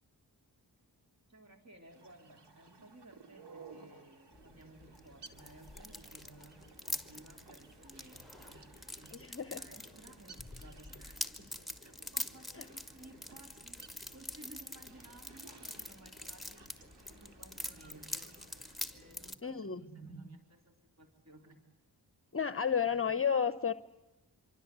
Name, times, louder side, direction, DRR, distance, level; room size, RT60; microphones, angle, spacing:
voice 1, 1.3-11.5 11.8-18.5 18.9-21.6 22.9-23.0, right 2 dB, 40° right, 3 dB, 3.4 m, -57 dB
sound 1, 1.8-18.9, right 4 dB, 85° right, 2.5 m, -59 dB
sound 2, 2.7-19.4, left 2 dB, 25° right, 6.1 m, -65 dB
sound 3, 4.3-19.3, left 1 dB, ahead, 2.1 m, -45 dB
voice 2, 9.1-9.6 12.6-12.7 19.4-19.8 22.3-23.7, left 7 dB, 35° left, 12 dB, 0.9 m, -32 dB
26.0 x 25.0 x 8.2 m, 0.99 s
cardioid pair, 60°, 40 cm